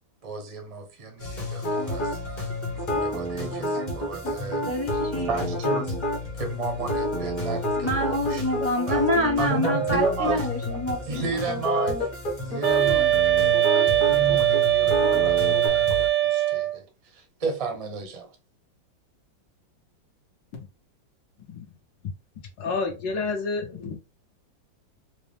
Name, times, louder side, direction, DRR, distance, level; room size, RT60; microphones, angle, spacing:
voice 1, 0.2-2.2 2.8-4.6 5.3-6.0 6.4-9.0 9.4-10.4 11.1-12.1 12.5-13.2 13.7-16.8 17.1-18.3, right 4 dB, 55° right, 0.4 m, -33 dB
sound 1, 1.2-16.1, left 3 dB, 30° left, 0.9 m, -34 dB
sound 2, 1.6-2.2 2.8-6.2 6.8-10.4 10.7-10.8 11.1-15.7, equal, 50° left, 1.6 m, -29 dB
voice 2, 4.7-5.4 7.8-11.4, left 1 dB, 15° left, 0.4 m, -27 dB
sound 3, 12.6-16.8, right 13 dB, 85° right, 1.4 m, -21 dB
voice 3, 22.6-24.0, left 4 dB, 75° left, 1.7 m, -29 dB
4.5 x 2.1 x 3.4 m
omnidirectional pair, 2.0 m